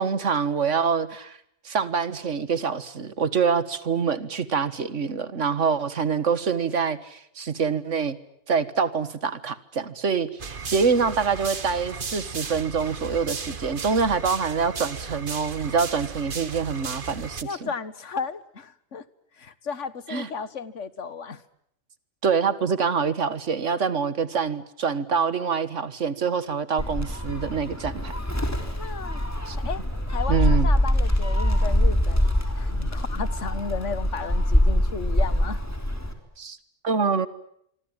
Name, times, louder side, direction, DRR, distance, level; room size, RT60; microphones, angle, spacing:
voice 1, 0.0-1.4 1.7-8.2 8.5-17.7 20.1-20.3 22.2-28.1 29.5-29.6 30.3-30.8 36.4-36.6 36.8-37.3, right 5 dB, 85° right, 14 dB, 1.9 m, -25 dB
sound 1, 10.4-17.4, right 5 dB, 45° right, 1.4 m, -35 dB
voice 2, 17.4-19.0 19.4-21.4 28.8-29.3 29.6-29.8 30.1-35.6, left 5 dB, 85° left, 15 dB, 1.7 m, -34 dB
Gull seagull, 26.8-36.1, left 1 dB, 15° left, 3.8 m, -24 dB
25.5 x 25.0 x 8.9 m, 0.73 s
omnidirectional pair, 1.2 m